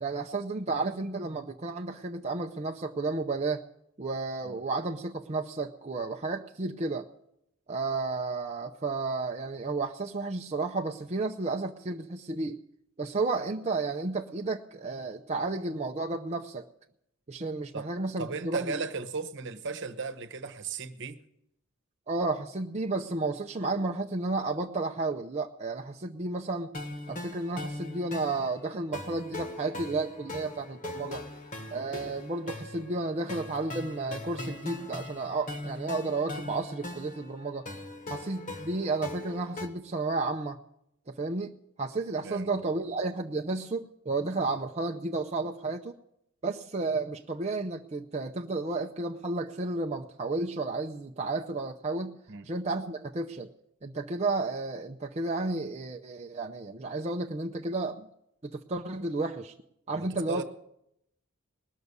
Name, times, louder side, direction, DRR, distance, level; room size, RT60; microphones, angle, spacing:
voice 1, 0.0-3.6 4.0-7.1 7.7-12.6 13.0-16.6 17.3-18.8 22.1-26.7 27.1-31.2 31.7-37.7 38.1-40.6 41.1-41.5 41.8-46.0 46.4-52.2 52.4-53.5 53.8-58.1 58.4-59.5 59.9-60.4, right 3 dB, 30° right, 0.6 m, -32 dB
voice 2, 18.2-21.2 42.2-42.5 42.8-42.9 52.3-52.5 59.9-60.4, right 4 dB, 60° right, 1.1 m, -36 dB
sound 1, 26.7-39.7, left 2 dB, 35° left, 1.4 m, -40 dB
19.5 x 6.8 x 9.6 m
head